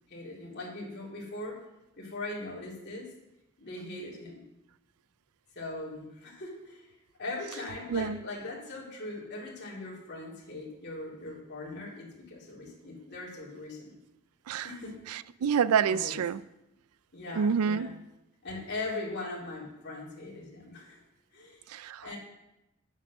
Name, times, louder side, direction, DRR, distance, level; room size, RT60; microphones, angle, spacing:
voice 1, 0.1-1.5 2.0-3.1 3.6-4.4 5.5-6.9 7.2-13.9 14.6-14.9 15.9-16.2 17.1-17.9 18.4-21.0 21.3-21.6 22.0-22.2, left 2 dB, 50° left, 2.8 m, -40 dB
voice 2, 7.9-8.2 14.5-14.7 15.1-16.4 17.3-18.0 21.7-22.1, right 7 dB, 90° right, 0.4 m, -28 dB
8.3 x 7.2 x 6.1 m
head